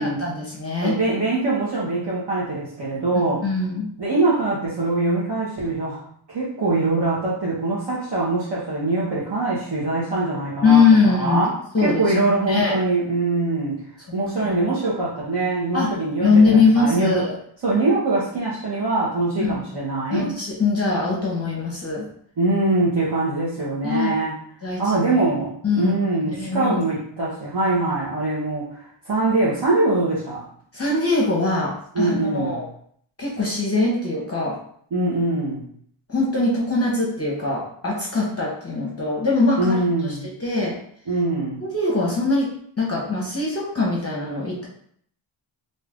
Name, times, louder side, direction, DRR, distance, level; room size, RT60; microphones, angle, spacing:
voice 1, 0.0-0.9 3.4-3.9 10.6-11.5 11.7-12.0 12.5-12.7 14.5-14.6 15.7-15.9 16.2-17.3 19.4-19.6 20.1-22.0 23.8-24.1 24.6-25.0 25.6-26.0 26.3-26.7 30.7-32.7 33.2-34.6 36.1-40.7 41.6-42.5 42.8-44.7, left 3 dB, 30° left, -3 dB, 0.8 m, -21 dB
voice 2, 0.8-3.4 4.0-6.0 6.3-13.7 14.1-17.2 17.6-20.3 22.4-24.3 24.8-30.4 31.9-32.6 34.9-35.6 39.6-40.3 41.1-41.6, right 2 dB, 55° right, -8 dB, 1.0 m, -23 dB
2.7 x 2.4 x 3.4 m, 0.62 s
wide cardioid pair, 100°, 50 cm